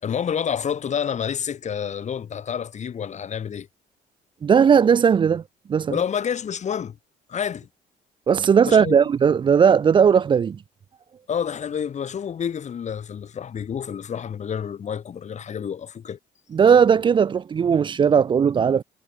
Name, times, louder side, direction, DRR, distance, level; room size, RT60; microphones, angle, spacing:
voice 1, 0.0-3.7 5.9-7.0 7.3-7.7 8.6-9.1 11.3-16.2, left 8 dB, 45° left, 5.3 m, -29 dB
voice 2, 4.4-5.4 5.7-6.0 8.3-10.6 16.5-18.8, right 7 dB, 30° right, 0.5 m, -17 dB
cardioid pair, 110°, 17 cm